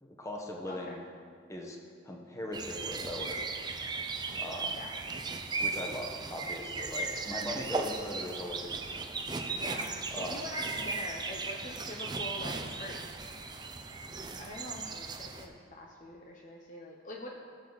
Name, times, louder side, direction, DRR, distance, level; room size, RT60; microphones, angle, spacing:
voice 1, 0.0-1.0 1.5-1.8 2.0-3.4 4.4-4.8 5.6-8.7 9.0-9.1 10.1-10.5, left 1 dB, 15° left, 0 dB, 1.1 m, -39 dB
voice 2, 0.7-1.0 4.7-5.0 9.5-13.0 14.4-17.3, left 1 dB, 40° left, 0 dB, 0.8 m, -44 dB
sound 1, 2.5-15.5, right 3 dB, 20° right, 0.6 m, -37 dB
18.0 x 7.0 x 4.0 m, 2.2 s
head